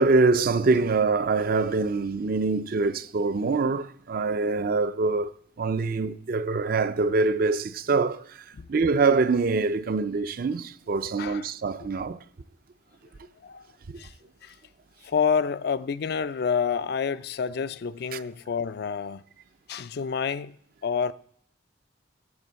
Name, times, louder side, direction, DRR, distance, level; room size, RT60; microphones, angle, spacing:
voice 1, 0.0-12.2 13.9-14.0 18.1-18.2, right 3 dB, 55° right, 0.5 m, -24 dB
voice 2, 15.0-19.2 19.7-20.5 20.8-21.1, left 6 dB, 60° left, 0.4 m, -28 dB
9.6 x 8.0 x 7.4 m
head